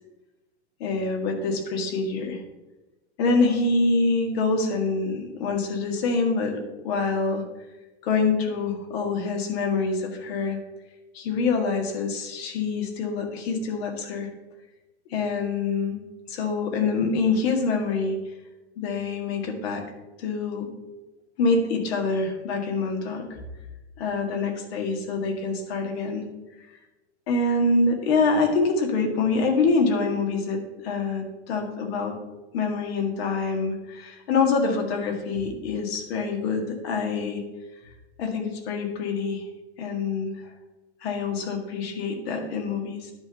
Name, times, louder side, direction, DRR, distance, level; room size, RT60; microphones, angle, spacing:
voice 1, 0.8-2.4 3.2-7.4 8.0-10.6 11.1-14.3 15.1-16.0 16.3-18.2 18.8-19.8 20.2-20.7 21.4-23.4 24.0-26.2 27.3-32.2 32.5-37.4 38.2-39.4 39.8-40.3 41.0-43.1, left 4 dB, 60° left, 3 dB, 2.0 m, -25 dB
10.0 x 3.8 x 7.0 m, 1.1 s
hypercardioid pair, 105°, 34 cm